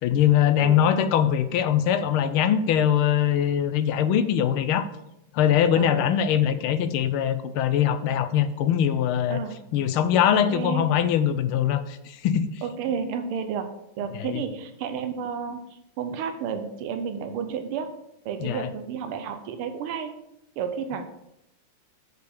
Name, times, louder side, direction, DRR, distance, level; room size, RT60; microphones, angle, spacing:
voice 1, 0.0-4.8 5.3-9.4 9.7-12.5 14.2-14.4 18.4-18.7, left 9 dB, 90° left, 11 dB, 1.5 m, -22 dB
voice 2, 5.7-6.1 9.3-9.6 10.3-10.9 12.6-13.7 14.0-17.9 18.2-20.1 20.6-21.0, right 7 dB, 85° right, 7 dB, 1.7 m, -31 dB
6.9 x 5.0 x 6.5 m, 0.84 s
omnidirectional pair, 2.3 m